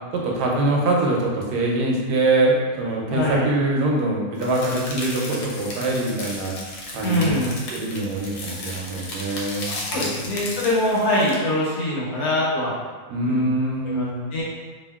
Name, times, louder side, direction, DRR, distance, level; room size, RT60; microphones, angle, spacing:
voice 1, 0.1-6.6 6.9-7.4 7.7-10.1 13.1-14.2, right 2 dB, 90° right, -1 dB, 1.2 m, -23 dB
voice 2, 3.1-3.5 7.0-7.6 9.7-12.7 13.3-13.5 13.8-14.4, left 1 dB, 70° left, -6 dB, 1.2 m, -23 dB
sound 1, 4.4-11.4, left 2 dB, 90° left, 1.1 m, -34 dB
2.7 x 2.6 x 2.2 m, 1.4 s
omnidirectional pair, 1.7 m